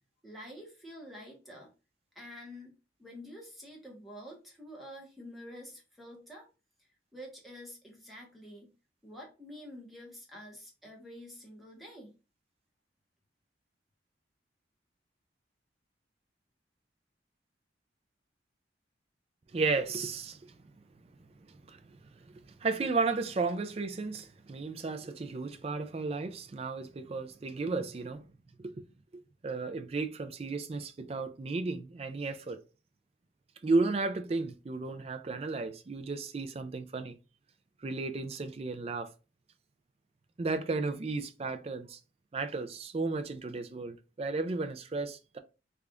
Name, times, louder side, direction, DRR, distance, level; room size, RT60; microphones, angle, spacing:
voice 1, 0.2-1.7 2.1-2.7 3.0-6.5 7.1-8.7 9.0-12.1, equal, ahead, 1.0 m, -48 dB
voice 2, 19.5-20.5 21.7-28.2 28.6-28.7 29.4-32.6 33.6-37.2 37.8-39.1 40.4-42.0 42.3-45.4, right 3 dB, 35° right, 0.4 m, -34 dB
3.2 x 2.4 x 3.6 m
head